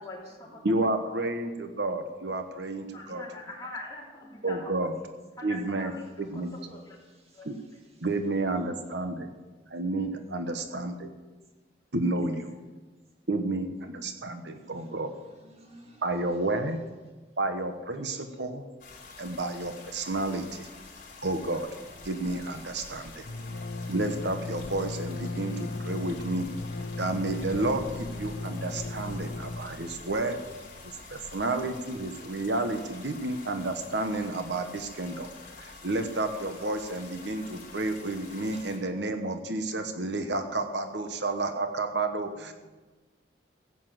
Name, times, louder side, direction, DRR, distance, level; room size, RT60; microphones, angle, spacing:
voice 1, 0.0-0.6 0.9-1.0 2.9-4.8 5.4-6.4 6.7-7.0 7.3-7.5, left 2 dB, 20° left, -4 dB, 3.7 m, -43 dB
voice 2, 0.6-3.2 4.4-5.0 5.4-5.9 6.2-6.6 7.4-7.6 8.0-9.3 9.7-11.1 11.9-12.5 13.3-15.1 16.0-16.8 17.4-18.6 19.2-20.7 21.2-21.7 22.0-23.2 23.9-26.5 27.0-30.4 31.1-35.3 35.6-42.5, right 2 dB, 65° right, 7 dB, 1.1 m, -31 dB
voice 3, 7.1-7.5 14.3-16.7 20.8-21.0 29.9-30.0 30.8-31.4 38.5-38.6 42.4-42.5, equal, 35° right, 2 dB, 2.2 m, -56 dB
sound 1, 18.8-38.8, left 4 dB, 50° left, 4.0 m, -48 dB
sound 2, 20.7-20.8 21.0-21.1 21.4-32.0, left 2 dB, 85° left, 0.9 m, -38 dB
15.5 x 8.5 x 7.8 m, 1.3 s
head